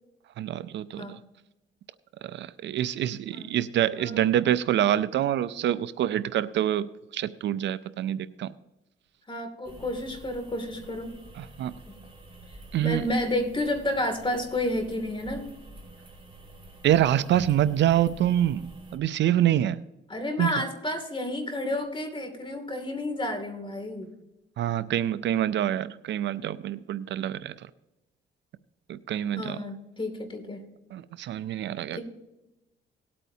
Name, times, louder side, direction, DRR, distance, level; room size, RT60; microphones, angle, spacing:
voice 1, 0.4-1.2 2.2-8.5 11.4-11.7 12.7-13.0 16.8-19.8 20.4-20.5 24.6-27.5 28.9-29.6 30.9-32.0, right 11 dB, 65° right, 15 dB, 0.5 m, -26 dB
voice 2, 9.3-11.1 11.9-12.0 12.8-15.5 20.1-24.1 29.4-30.6 31.9-32.0, left 1 dB, 25° left, 6 dB, 2.5 m, -31 dB
sound 1, 9.6-19.0, right 1 dB, 25° right, 2.2 m, -48 dB
18.5 x 8.5 x 2.8 m, 0.97 s
cardioid pair, 90°, 20 cm